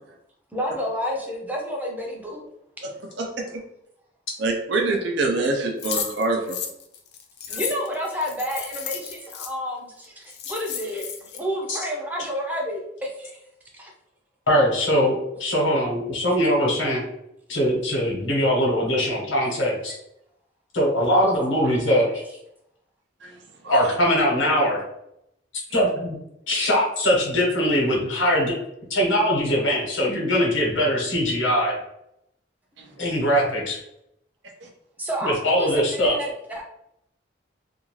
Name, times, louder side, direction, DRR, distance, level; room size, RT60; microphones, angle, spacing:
voice 1, 0.5-2.4 7.5-13.3 19.4-19.5 21.6-21.8 35.0-36.6, equal, 10° right, -1 dB, 0.5 m, -30 dB
voice 2, 4.4-6.6, right 3 dB, 70° right, 1 dB, 0.5 m, -24 dB
sound 1, 5.8-9.5 10.0-10.1 10.3-11.4, left 8 dB, 60° left, 0.4 m, -33 dB
voice 3, 14.5-17.0 17.5-20.0 20.7-22.2 23.6-24.8 25.7-26.2 26.5-28.5 28.9-31.7 33.0-33.8 35.2-36.2, equal, 85° left, -2 dB, 1.0 m, -21 dB
2.6 x 2.3 x 3.0 m, 0.78 s
head